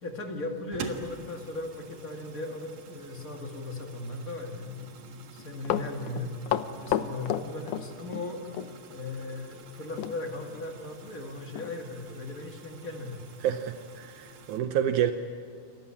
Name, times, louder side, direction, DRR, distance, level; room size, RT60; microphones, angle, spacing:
voice 1, 0.0-6.3 6.8-8.4 8.9-13.2, left 2 dB, 35° left, 3 dB, 1.5 m, -37 dB
sound 1, 0.7-14.6, right 5 dB, 55° right, 2.3 m, -48 dB
Run, 5.4-8.3 8.5-8.7 10.0-10.2 10.5-10.6 11.1-11.2 11.6-11.7 12.3-12.4, left 11 dB, 80° left, 1.7 m, -30 dB
voice 2, 13.4-15.1, right 10 dB, 90° right, 8 dB, 1.7 m, -28 dB
28.5 x 14.5 x 9.9 m, 2.3 s
omnidirectional pair, 4.6 m